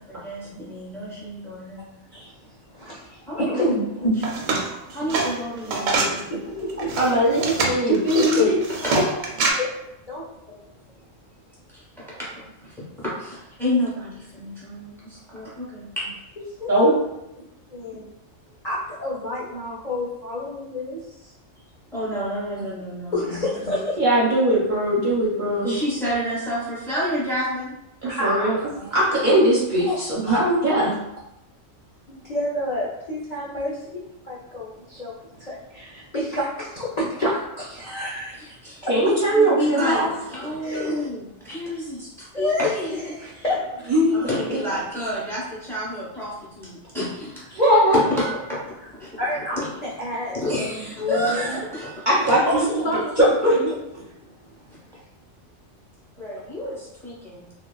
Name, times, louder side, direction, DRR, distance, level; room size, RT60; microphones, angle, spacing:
voice 1, 0.0-1.9 3.3-3.6 4.9-6.1 8.8-8.9 11.7-12.3 12.6-16.0 21.9-23.1 25.4-27.7 38.4-43.1 44.1-47.4 47.9-48.6 48.9-49.1 49.5-49.7 50.3-52.1 56.2-57.5, equal, ahead, -7 dB, 0.7 m, -29 dB
voice 2, 2.7-4.7 5.9-7.0 7.4-7.5 8.1-9.1 9.6-9.7 10.1-10.3 16.6-17.0 17.7-18.1 18.6-21.3 23.1-24.0 28.0-29.0 29.9-30.0 30.3-30.4 32.1-38.6 38.8-38.9 39.2-39.3 40.6-41.1 42.3-43.9 49.2-51.6 52.5-53.7 54.0-54.3, left 1 dB, 50° left, -7 dB, 0.5 m, -28 dB
sound 1, 4.1-6.2 6.7-9.5, right 3 dB, 85° right, 1.0 m, -25 dB
voice 3, 7.0-8.6 16.7-16.9 24.0-25.8 28.0-28.5 28.9-31.0 38.9-40.1 43.9-44.2 47.5-48.0 52.1-52.4 53.2-53.5, right 1 dB, 50° right, -7 dB, 0.7 m, -20 dB
3.1 x 2.2 x 2.2 m, 0.85 s
omnidirectional pair, 1.3 m